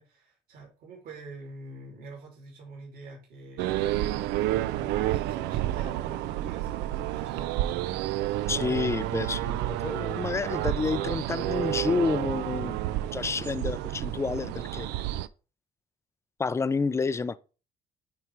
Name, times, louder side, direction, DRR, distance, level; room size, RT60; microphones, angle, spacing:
voice 1, 0.0-3.9 4.4-8.2 8.5-8.7, right 2 dB, 60° right, 3.4 m, -46 dB
sound 1, 3.6-15.3, right 14 dB, 90° right, 0.4 m, -30 dB
voice 2, 8.5-12.8 13.1-14.9 16.4-17.4, left 4 dB, 15° left, 0.4 m, -29 dB
9.3 x 3.3 x 4.7 m
cardioid pair, 110°, 17 cm